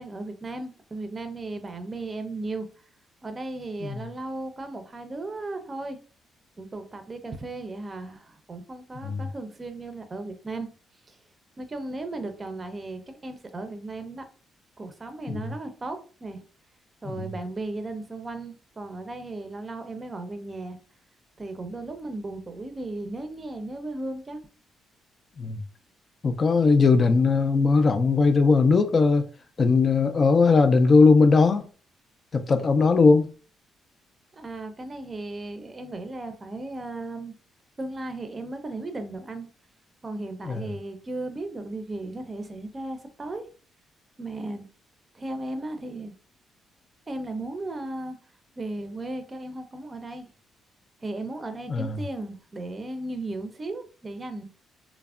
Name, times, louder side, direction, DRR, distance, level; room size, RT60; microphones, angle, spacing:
voice 1, 0.0-2.7 3.2-6.0 6.6-10.7 11.1-11.2 11.6-14.2 14.8-16.4 17.0-20.8 21.4-24.4 34.3-37.3 37.8-39.5 40.0-43.4 44.2-44.7 45.1-46.1 47.1-48.2 48.6-50.3 51.0-54.5, right 2 dB, 30° right, 0.5 m, -36 dB
voice 2, 26.2-29.2 29.6-31.7 32.3-33.2 40.4-40.7 51.7-52.0, left 4 dB, 40° left, 0.3 m, -19 dB
3.2 x 2.0 x 2.4 m
cardioid pair, 90°, 0 cm